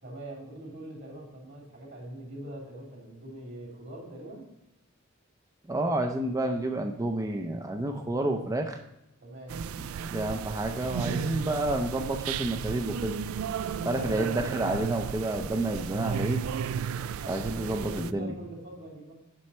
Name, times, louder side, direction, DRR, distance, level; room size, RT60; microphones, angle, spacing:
voice 1, 0.0-4.4 9.2-9.6 13.9-14.3 17.2-19.1, right 1 dB, 55° right, -2 dB, 3.0 m, -43 dB
voice 2, 5.7-8.8 10.1-13.2 13.8-16.4 17.3-18.3, right 1 dB, 15° right, 4 dB, 0.5 m, -29 dB
sound 1, 9.5-18.1, right 7 dB, 85° right, 0.3 m, -34 dB
7.6 x 5.9 x 4.2 m, 0.87 s
head